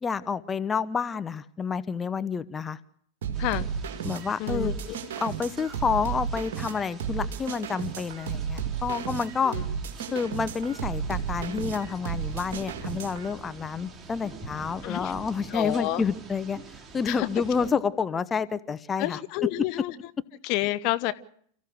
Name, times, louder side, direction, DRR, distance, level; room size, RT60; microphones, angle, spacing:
voice 1, 0.0-2.8 4.0-4.7 5.2-9.6 10.1-16.6 16.9-19.2, left 5 dB, 15° left, 14 dB, 1.0 m, -29 dB
sound 1, 3.2-13.3, right 7 dB, 55° right, 2.4 m, -33 dB
sound 2, 3.3-17.7, right 3 dB, 20° right, 2.9 m, -46 dB
voice 2, 4.4-5.0 7.2-7.3 9.4-9.6 14.8-15.1 15.5-16.0 17.0-17.3 19.0-19.9 20.4-21.1, left 17 dB, 45° left, 13 dB, 0.9 m, -29 dB
29.5 x 15.5 x 6.3 m, 0.63 s
figure-of-eight pair, 90°, 0 cm